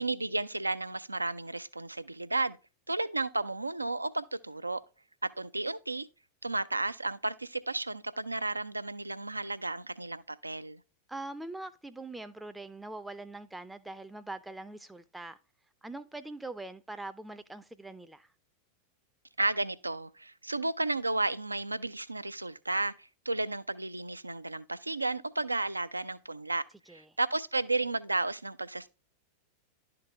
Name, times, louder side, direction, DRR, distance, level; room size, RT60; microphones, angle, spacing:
voice 1, 0.0-2.6 2.9-4.8 5.4-6.1 6.4-10.8 19.4-26.6 26.9-28.9, right 2 dB, 85° right, 0.4 m, -33 dB
voice 2, 11.1-15.4 15.8-18.3 26.9-27.2, right 2 dB, 5° right, 0.4 m, -43 dB
11.5 x 3.9 x 3.3 m
figure-of-eight pair, 90°, 0 cm